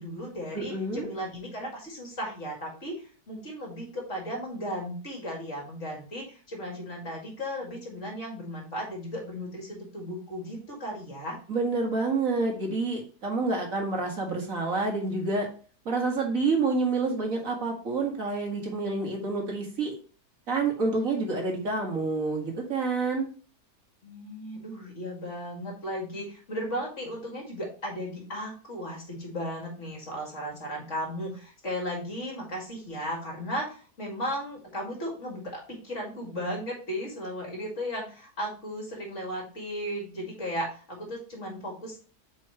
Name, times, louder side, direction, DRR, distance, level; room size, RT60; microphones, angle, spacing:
voice 1, 0.0-11.4 24.0-42.0, equal, 45° left, -1 dB, 2.4 m, -35 dB
voice 2, 0.5-1.1 11.5-15.5 15.9-19.9 20.5-23.3, right 3 dB, 55° right, 1 dB, 1.9 m, -28 dB
8.2 x 4.6 x 3.0 m, 0.39 s
omnidirectional pair, 1.8 m